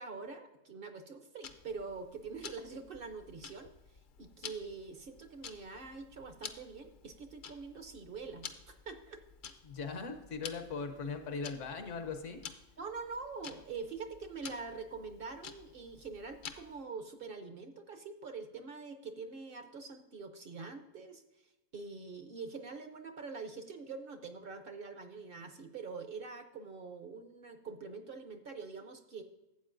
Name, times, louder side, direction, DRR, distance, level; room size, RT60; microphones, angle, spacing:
voice 1, 0.0-3.7 4.2-9.2 12.8-21.2 21.7-29.2, right 4 dB, 55° right, 7 dB, 0.8 m, -45 dB
Tick-tock, 1.4-16.8, left 6 dB, 55° left, 0.6 m, -51 dB
voice 2, 9.6-12.4, left 4 dB, 75° left, 7 dB, 1.2 m, -39 dB
12.5 x 8.0 x 2.5 m, 0.97 s
omnidirectional pair, 1.3 m